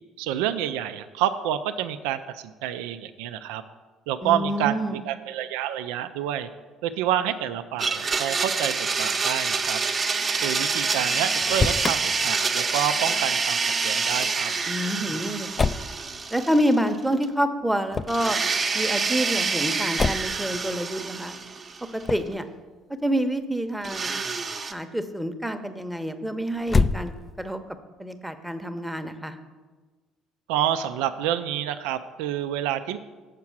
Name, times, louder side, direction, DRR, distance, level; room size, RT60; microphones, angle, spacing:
voice 1, 0.2-3.6 4.1-6.5 6.8-9.8 10.4-13.6 13.8-14.5 30.5-33.0, right 11 dB, 80° right, 10 dB, 0.4 m, -28 dB
voice 2, 4.2-5.0 14.7-15.7 16.3-18.4 18.7-21.3 21.9-22.4 23.0-24.2 24.7-27.6 28.0-29.4, equal, 5° right, 8 dB, 0.8 m, -27 dB
Domestic sounds home sounds, 7.8-17.0 17.2-17.3 18.1-22.0 23.8-24.7, right 4 dB, 40° right, 0.8 m, -27 dB
Motor vehicle (road), 11.3-12.0 15.6-15.9 17.9-18.3 20.0-20.4 22.0-22.4 26.6-27.5, left 4 dB, 30° left, 0.3 m, -25 dB
7.4 x 4.7 x 7.2 m, 1.3 s
hypercardioid pair, 65°, 0 cm